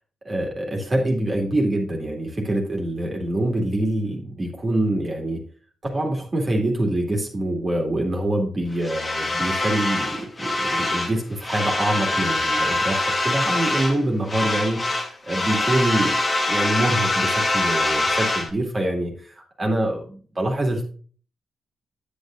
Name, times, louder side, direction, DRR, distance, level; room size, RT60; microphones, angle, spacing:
voice 1, 0.2-5.4 5.8-16.2 16.5-20.8, right 1 dB, 25° right, 0 dB, 2.2 m, -25 dB
sound 1, 8.8-11.2 11.4-14.0 14.3-18.5, left 2 dB, 20° left, 1.7 m, -24 dB
10.0 x 8.3 x 2.6 m, 0.41 s
wide cardioid pair, 150°, 0 cm